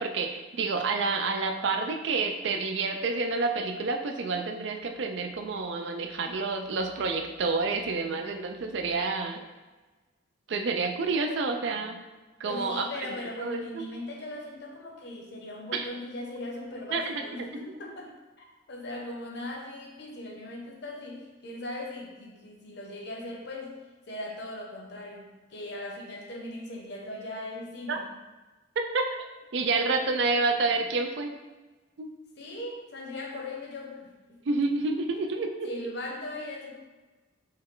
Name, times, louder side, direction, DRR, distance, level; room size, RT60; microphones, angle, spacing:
voice 1, 0.0-9.4 10.5-12.0 12.4-12.9 13.4-13.8 15.7-15.9 16.9-17.2 17.6-17.7 27.9-28.0 28.8-29.1 29.5-31.3 32.0-32.1 34.5-35.7, right 3 dB, 60° right, 5 dB, 0.4 m, -29 dB
voice 2, 12.4-23.8 24.1-28.1 32.4-34.4 35.6-36.7, left 1 dB, 55° left, 0 dB, 0.8 m, -39 dB
5.3 x 2.2 x 3.7 m, 1.2 s
head